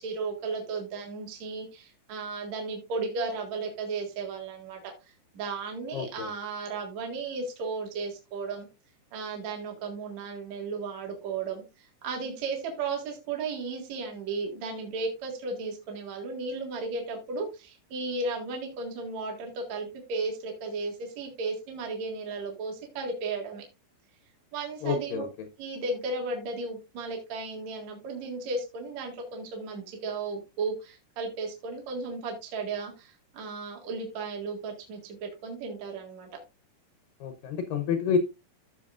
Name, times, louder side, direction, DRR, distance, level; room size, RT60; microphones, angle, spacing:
voice 1, 0.0-4.9 5.3-8.7 9.1-23.6 24.5-25.3 25.6-36.3, right 3 dB, 50° right, 2.5 m, -35 dB
voice 2, 5.9-6.3 24.8-25.3 37.2-38.2, left 6 dB, 80° left, 2.0 m, -28 dB
15.0 x 6.0 x 2.5 m
omnidirectional pair, 5.0 m